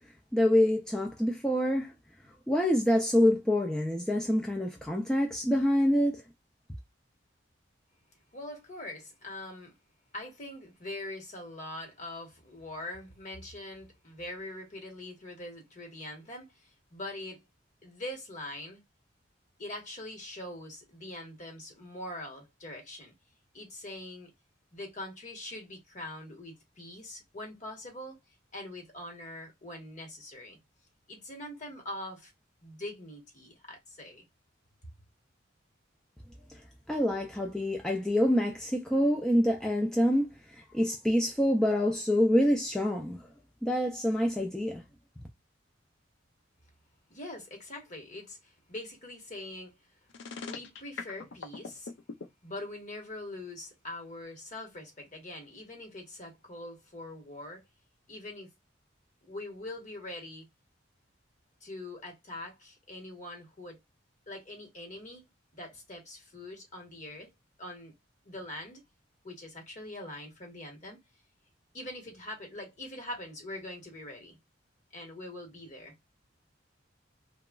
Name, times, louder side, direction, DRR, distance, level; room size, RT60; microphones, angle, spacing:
voice 1, 0.3-1.9 2.5-6.2 36.5-36.6 36.9-43.3 43.6-44.8, equal, 5° left, 0.3 m, -26 dB
voice 2, 8.3-9.7 10.1-17.4 17.8-18.8 19.6-23.1 23.5-24.3 24.7-28.2 28.5-30.6 31.1-32.3 32.6-34.2 47.1-49.7 50.4-51.9 52.4-57.6 58.1-58.5 59.2-60.4 61.6-63.8 64.3-65.2 65.5-67.3 67.6-67.9 68.2-68.8 69.2-71.0 71.7-74.4 74.9-75.9, left 1 dB, 40° left, 1.1 m, -43 dB
sound 1, 50.1-52.3, left 4 dB, 70° left, 0.5 m, -40 dB
3.0 x 2.3 x 2.2 m
head